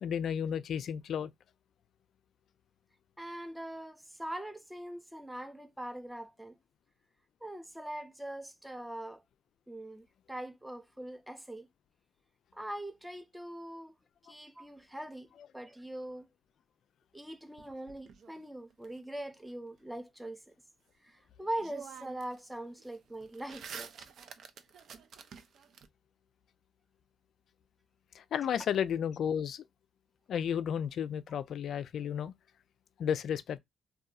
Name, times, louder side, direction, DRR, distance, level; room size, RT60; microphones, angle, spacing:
voice 1, 0.0-1.3 28.2-29.6 30.3-32.3 33.0-33.6, left 8 dB, 65° left, 0.3 m, -33 dB
voice 2, 3.2-6.6 7.4-9.2 9.7-11.7 12.5-13.9 14.2-16.3 17.1-20.5 21.0-24.1, right 1 dB, 5° right, 0.5 m, -42 dB
sound 1, 17.6-18.9 21.1-21.2 21.6-22.4 22.7-25.9, right 7 dB, 65° right, 0.4 m, -49 dB
2.7 x 2.3 x 2.3 m
cardioid pair, 90°, 0 cm